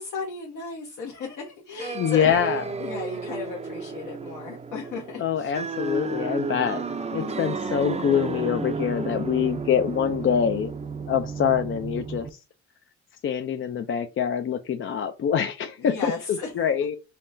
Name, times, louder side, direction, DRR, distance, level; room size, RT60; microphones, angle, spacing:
voice 1, 0.0-2.3 2.8-5.5 7.2-7.6 15.8-16.5, left 5 dB, 70° left, 1.1 m, -35 dB
sound 1, 1.8-12.3, right 4 dB, 20° right, 0.5 m, -32 dB
voice 2, 2.0-2.6 5.2-6.8 7.1-10.7 11.1-12.4 13.2-17.0, left 8 dB, 40° left, 0.4 m, -25 dB
5.7 x 2.1 x 2.6 m
cardioid pair, 80°, 31 cm